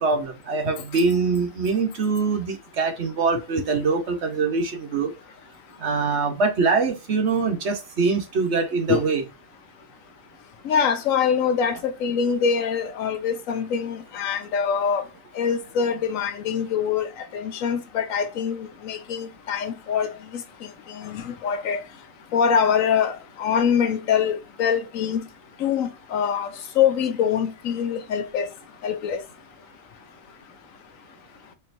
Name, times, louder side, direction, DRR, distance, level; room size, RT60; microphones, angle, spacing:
voice 1, 0.0-5.1 5.8-9.2, right 4 dB, 55° right, 1.1 m, -23 dB
voice 2, 10.6-15.1 15.4-20.1 20.9-21.8 22.3-25.2 25.6-26.5 26.8-28.5 28.8-29.2, left 7 dB, 75° left, 1.0 m, -24 dB
4.4 x 2.9 x 2.6 m
omnidirectional pair, 1.4 m